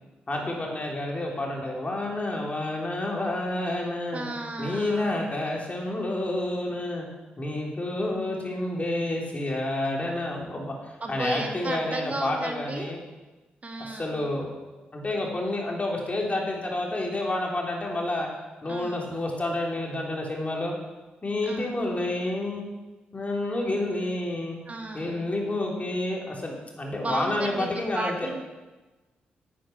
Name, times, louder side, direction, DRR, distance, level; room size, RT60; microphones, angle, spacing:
voice 1, 0.3-4.3 4.6-7.1 7.4-13.0 13.8-14.5 14.9-18.3 18.6-20.7 21.2-22.7 23.1-24.6 24.9-28.3, left 1 dB, 35° left, -1 dB, 3.4 m, -29 dB
voice 2, 4.1-5.3 11.0-12.9 13.6-14.3 18.7-19.1 21.4-21.8 24.7-25.3 27.0-28.4, right 2 dB, 35° right, 4 dB, 1.6 m, -34 dB
9.6 x 8.9 x 5.9 m, 1.2 s
supercardioid pair, 45°, 4 cm